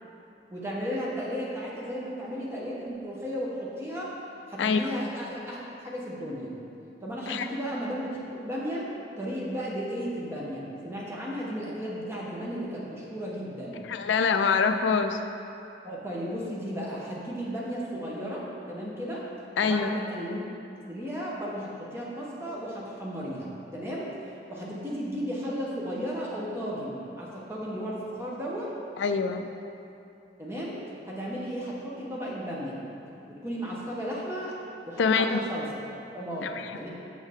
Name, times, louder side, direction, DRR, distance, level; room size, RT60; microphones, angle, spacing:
voice 1, 0.5-4.1 4.5-5.6 5.8-6.5 7.0-8.9 9.2-13.8 15.8-19.2 19.6-20.5 20.9-28.7 30.4-30.8 31.0-32.8 33.3-34.5 34.8-35.7 36.1-36.9, equal, 15° right, -5 dB, 0.9 m, -34 dB
voice 2, 13.9-15.2 19.6-19.9 29.0-29.5 35.0-35.4 36.4-36.5, left 5 dB, 85° left, 7 dB, 0.4 m, -24 dB
6.4 x 6.3 x 3.6 m, 2.8 s
head